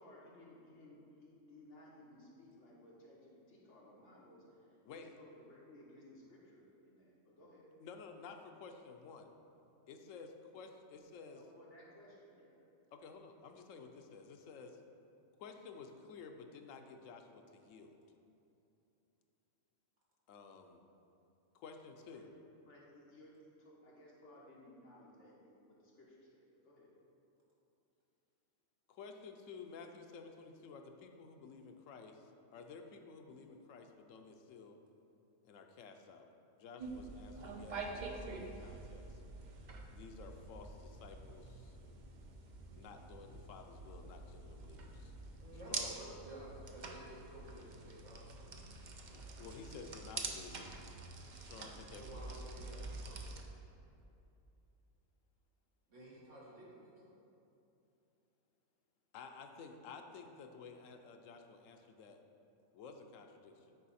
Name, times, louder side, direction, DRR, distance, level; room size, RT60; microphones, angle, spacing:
voice 1, 0.0-7.7 11.3-12.6 22.1-22.3 22.7-26.9, left 1 dB, 65° left, -5 dB, 1.8 m, -59 dB
voice 2, 7.8-9.3 9.9-11.4 12.9-14.8 15.4-18.0 20.3-20.8 21.5-22.3 28.9-34.8 35.4-36.3 36.6-39.2 39.9-41.8 42.7-45.1 45.7-45.9 49.1-50.8 51.3-52.4 52.7-53.2 59.1-62.2 62.7-63.8, left 5 dB, 90° left, 5 dB, 1.0 m, -53 dB
sound 1, 36.8-53.4, right 3 dB, 45° right, 0.6 m, -47 dB
voice 3, 45.4-48.5 52.0-53.3 55.9-57.1, right 1 dB, 70° right, -7 dB, 2.1 m, -53 dB
9.3 x 4.7 x 4.2 m, 2.8 s
omnidirectional pair, 1.3 m